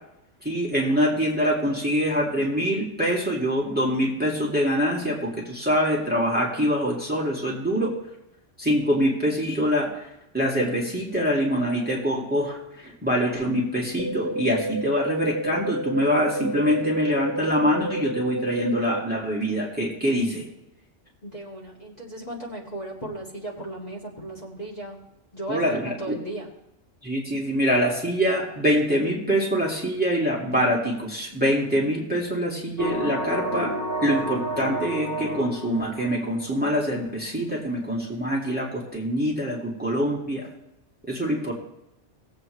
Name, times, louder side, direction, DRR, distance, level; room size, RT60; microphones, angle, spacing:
voice 1, 0.4-7.9 8.6-9.9 10.3-20.4 25.5-26.2 27.0-33.7 34.0-40.5 41.1-41.5, equal, 10° right, -3 dB, 2.2 m, -24 dB
sound 1, 14.0-19.0, right 1 dB, 80° right, 1.0 m, -30 dB
voice 2, 21.2-25.0 25.3-26.5, right 1 dB, 35° left, -5 dB, 2.3 m, -36 dB
sound 2, 32.8-36.7, equal, 80° left, 2.3 m, -30 dB
19.5 x 8.1 x 3.2 m, 0.88 s
omnidirectional pair, 1.2 m